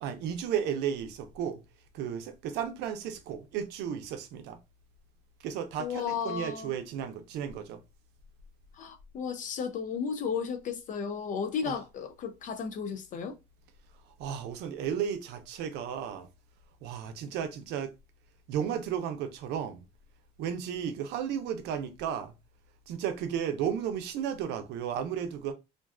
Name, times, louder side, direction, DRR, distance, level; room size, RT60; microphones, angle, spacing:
voice 1, 0.0-1.6 1.9-4.6 5.4-7.8 11.6-11.8 14.1-16.3 16.8-17.9 18.5-19.9 20.4-22.3 22.9-25.5, right 8 dB, 90° right, 0.5 m, -34 dB
voice 2, 5.8-6.7 8.7-13.4, left 6 dB, 50° left, 0.4 m, -34 dB
2.4 x 2.3 x 2.3 m
cardioid pair, 110°, 17 cm